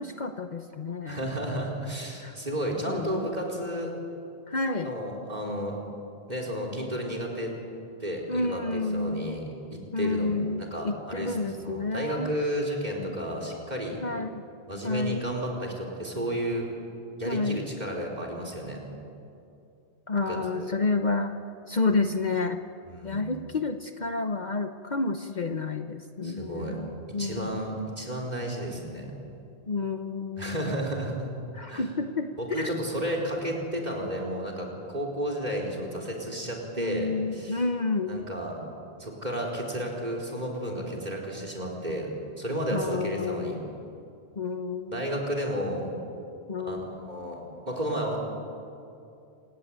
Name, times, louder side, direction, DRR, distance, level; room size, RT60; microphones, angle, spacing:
voice 1, 0.0-1.2 2.2-2.4 2.9-3.2 4.5-4.9 8.3-9.4 9.9-12.3 14.0-14.4 14.8-15.2 17.2-17.6 20.1-21.3 21.7-22.6 23.0-27.6 29.7-30.8 31.5-32.8 36.8-38.2 42.7-43.6 44.4-45.0 46.5-47.0, left 3 dB, 45° left, 7 dB, 1.0 m, -30 dB
voice 2, 1.1-3.9 4.8-5.8 6.3-7.5 8.0-10.3 10.6-14.0 14.7-16.7 17.2-18.8 20.3-20.8 22.8-23.3 26.2-26.7 27.2-29.1 30.4-31.3 31.7-31.9 32.4-37.6 38.1-38.5 39.0-42.1 42.4-43.6 44.9-45.9 46.6-47.4 47.7-48.2, equal, 40° right, 1 dB, 4.6 m, -32 dB
27.0 x 19.5 x 8.9 m, 2.6 s
omnidirectional pair, 1.1 m